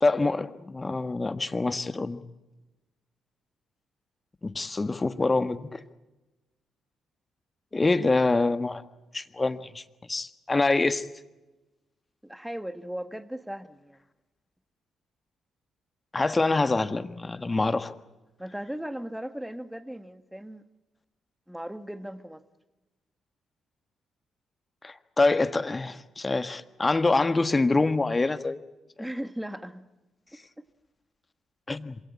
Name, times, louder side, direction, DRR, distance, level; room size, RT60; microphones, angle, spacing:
voice 1, 0.0-2.2 4.4-5.8 7.7-8.8 9.1-9.8 10.1-11.0 16.1-17.9 24.8-28.6 31.7-32.0, left 3 dB, 25° left, 12 dB, 1.5 m, -25 dB
voice 2, 12.2-14.0 18.4-20.6 21.5-22.4 29.0-29.8 30.3-30.4, equal, 5° right, 11 dB, 1.8 m, -37 dB
27.0 x 17.0 x 8.6 m, 1.1 s
hypercardioid pair, 45°, 0 cm